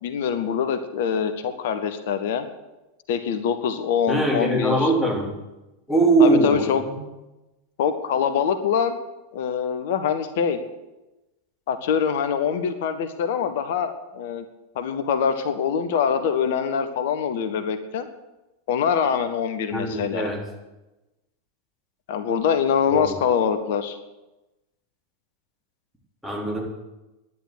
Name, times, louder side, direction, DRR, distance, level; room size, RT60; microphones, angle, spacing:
voice 1, 0.0-2.5 3.1-4.9 6.2-6.8 7.8-9.0 9.3-10.6 11.7-14.4 14.7-18.1 18.7-20.3 22.1-24.0, left 7 dB, 55° left, 10 dB, 1.0 m, -24 dB
voice 2, 4.1-5.3 5.9-7.0 19.7-20.4 22.9-23.2 26.2-26.6, right 2 dB, ahead, -3 dB, 4.0 m, -21 dB
10.5 x 10.0 x 7.9 m, 1.0 s
figure-of-eight pair, 90°, 0 cm